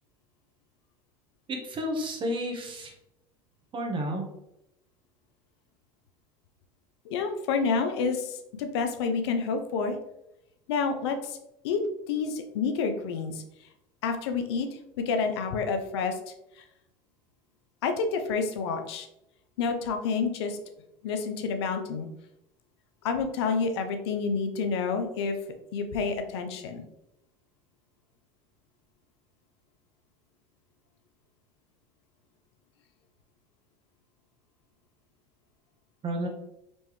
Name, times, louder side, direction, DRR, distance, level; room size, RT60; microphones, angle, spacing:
voice 1, 1.5-2.9 3.7-4.2 36.0-36.3, equal, 40° right, 2 dB, 1.2 m, -31 dB
voice 2, 7.1-10.0 10.7-11.4 11.6-11.8 12.1-13.4 14.0-14.7 15.0-16.2 16.6-16.7 17.8-19.1 19.6-20.6 21.0-22.1 23.0-25.4 25.7-26.9, left 5 dB, 85° left, 6 dB, 0.6 m, -29 dB
4.4 x 3.2 x 3.1 m, 0.84 s
supercardioid pair, 95°, 13 cm